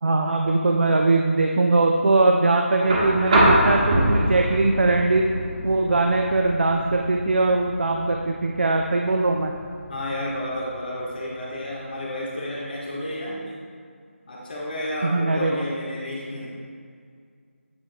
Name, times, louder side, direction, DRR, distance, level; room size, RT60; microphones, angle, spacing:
voice 1, 0.0-5.3 5.6-9.5 15.0-15.6, right 2 dB, 55° right, 2 dB, 0.5 m, -21 dB
sound 1, 2.8-10.9 12.3-12.4, right 1 dB, 30° right, 1.2 m, -25 dB
voice 2, 9.9-13.6 14.3-16.5, left 1 dB, 45° left, -5 dB, 1.3 m, -31 dB
8.7 x 7.3 x 2.2 m, 2.1 s
figure-of-eight pair, 165°, 7 cm